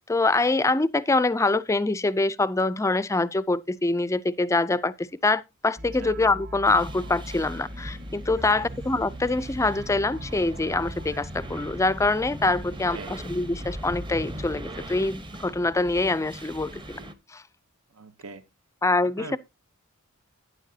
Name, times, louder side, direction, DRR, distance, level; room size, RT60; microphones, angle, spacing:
voice 1, 0.1-17.0 17.3-17.4 18.8-19.4, left 2 dB, 15° left, 0.4 m, -25 dB
sound 1, 5.8-11.7, right 1 dB, 45° right, 1.6 m, -40 dB
Wind and rain during taifun, 6.6-17.1, equal, 20° right, 0.9 m, -39 dB
voice 2, 12.6-13.2 17.9-18.4 19.0-19.4, right 3 dB, 75° right, 0.9 m, -42 dB
11.0 x 9.7 x 2.7 m
head